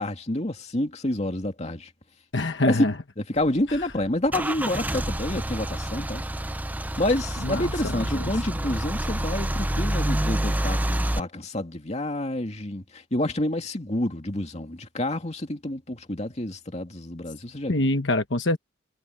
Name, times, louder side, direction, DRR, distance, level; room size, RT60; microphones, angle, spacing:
voice 1, 0.0-1.9 2.7-2.8 3.2-6.2 7.0-18.0, left 1 dB, 35° left, 2.5 m, -28 dB
voice 2, 2.3-2.9 7.4-8.3 17.7-18.6, left 2 dB, 65° left, 1.3 m, -25 dB
Car / Engine starting / Idling, 3.4-11.2, right 1 dB, 10° right, 0.6 m, -28 dB
head